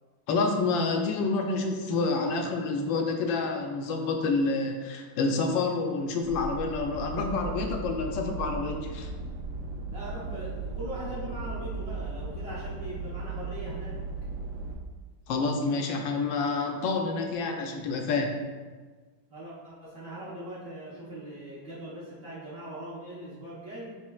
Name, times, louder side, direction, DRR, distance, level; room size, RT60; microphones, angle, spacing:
voice 1, 0.3-9.1 15.3-18.4, left 3 dB, 80° left, 3 dB, 1.3 m, -28 dB
sound 1, 6.2-14.7, right 3 dB, 75° right, 1.2 m, -36 dB
voice 2, 9.9-14.0 19.3-24.0, right 1 dB, 50° right, -10 dB, 1.3 m, -40 dB
4.5 x 4.2 x 2.3 m, 1.4 s
omnidirectional pair, 2.1 m